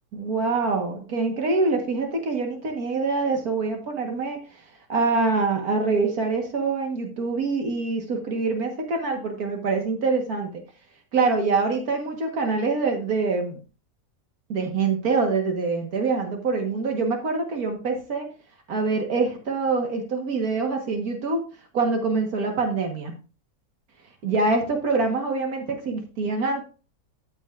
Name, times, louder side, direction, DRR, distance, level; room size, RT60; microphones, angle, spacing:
voice 1, 0.1-4.6 4.9-10.6 11.1-13.6 14.5-18.3 18.7-21.4 21.7-23.1 24.2-26.6, right 4 dB, 80° right, 3 dB, 2.0 m, -25 dB
13.0 x 6.4 x 2.5 m, 0.33 s
omnidirectional pair, 1.6 m